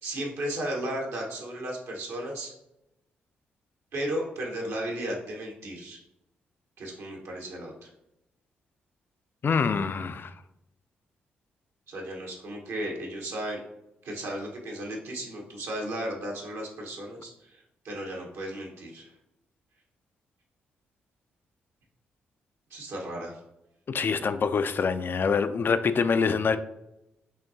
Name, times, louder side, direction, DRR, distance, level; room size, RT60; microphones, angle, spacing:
voice 1, 0.0-2.5 3.9-6.0 6.8-7.9 11.9-13.6 14.0-19.1 22.7-23.4 24.1-24.3, right 1 dB, 70° right, -1 dB, 1.1 m, -35 dB
voice 2, 9.4-10.3 23.9-26.6, left 5 dB, 45° left, 11 dB, 0.4 m, -25 dB
5.7 x 2.9 x 2.7 m, 0.88 s
hypercardioid pair, 45°, 5 cm